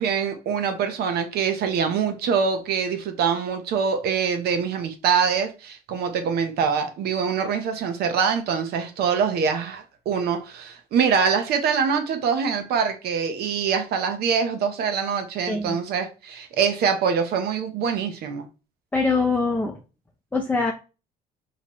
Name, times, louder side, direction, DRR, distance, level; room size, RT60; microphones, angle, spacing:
voice 1, 0.0-18.5, right 6 dB, 70° right, 0.9 m, -24 dB
voice 2, 15.5-15.8 18.9-19.8 20.3-20.7, left 3 dB, 10° left, 0.6 m, -23 dB
5.7 x 3.0 x 3.1 m
cardioid pair, 110°, 17 cm